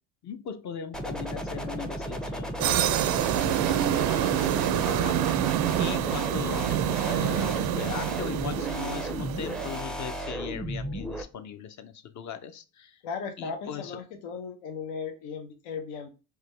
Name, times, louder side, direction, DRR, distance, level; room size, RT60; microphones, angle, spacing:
voice 1, 0.2-5.4 5.8-13.0 13.4-14.0, left 8 dB, 45° left, 0.6 m, -39 dB
sound 1, 0.9-11.2, equal, ahead, 0.4 m, -34 dB
sound 2, 2.6-9.8, right 12 dB, 60° right, 0.5 m, -27 dB
voice 2, 13.0-16.1, left 5 dB, 85° left, 0.8 m, -37 dB
4.6 x 2.2 x 3.2 m
supercardioid pair, 85°, 40 cm